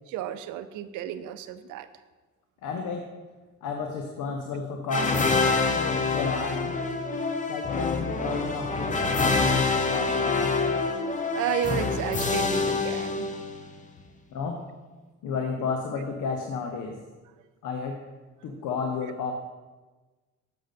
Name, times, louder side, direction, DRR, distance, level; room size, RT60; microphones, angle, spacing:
voice 1, 0.1-1.9 11.3-13.3, right 11 dB, 90° right, 12 dB, 0.5 m, -32 dB
voice 2, 2.6-3.1 3.6-5.4 5.7-6.7 7.5-10.8 14.3-14.6 15.2-17.0 17.6-18.0 18.4-19.3, left 5 dB, 85° left, 3 dB, 0.8 m, -32 dB
sound 1, 4.9-13.8, left 3 dB, 25° left, 0.7 m, -26 dB
6.7 x 6.4 x 4.1 m, 1.2 s
cardioid pair, 90°, 30 cm